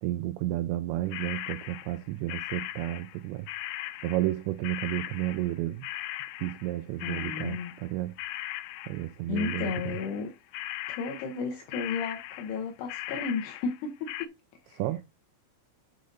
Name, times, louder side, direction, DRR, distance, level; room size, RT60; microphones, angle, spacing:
voice 1, 0.0-3.5 4.0-5.9 6.4-8.2 8.9-10.0 14.7-15.0, right 16 dB, 90° right, 2.5 m, -32 dB
sound 1, 1.1-7.9 8.2-10.3 10.5-11.5 11.7-14.3, left 15 dB, 90° left, 3.2 m, -39 dB
voice 2, 7.0-7.7 9.3-10.3 10.9-14.1 14.7-14.8, left 5 dB, 75° left, 2.7 m, -33 dB
6.6 x 6.4 x 4.0 m
omnidirectional pair, 5.7 m